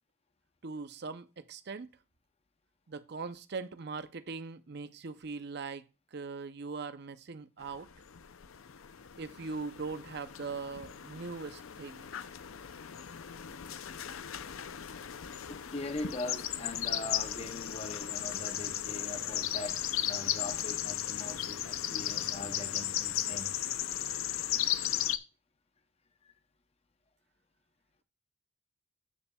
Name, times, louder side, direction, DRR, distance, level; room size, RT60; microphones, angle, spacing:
voice 1, 0.6-1.9 2.9-7.9 9.2-12.1, right 4 dB, 50° right, 0.6 m, -41 dB
sound 1, 7.7-25.2, left 11 dB, 80° left, 0.5 m, -36 dB
voice 2, 15.5-23.5, left 2 dB, 30° left, 0.7 m, -41 dB
12.5 x 6.9 x 2.3 m
head